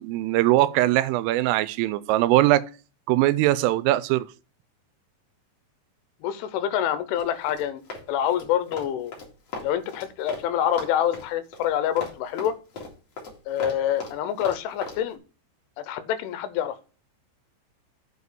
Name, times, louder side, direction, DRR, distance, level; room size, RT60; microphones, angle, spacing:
voice 1, 0.0-2.6 3.1-4.3, right 15 dB, 90° right, 3.2 m, -21 dB
voice 2, 6.2-7.8 8.1-9.1 9.6-12.6 13.5-15.2 15.8-16.8, left 10 dB, 85° left, 3.1 m, -26 dB
Run, 7.1-10.5 10.7-15.0, left 3 dB, 45° left, 2.4 m, -37 dB
8.5 x 4.6 x 6.7 m
omnidirectional pair, 5.7 m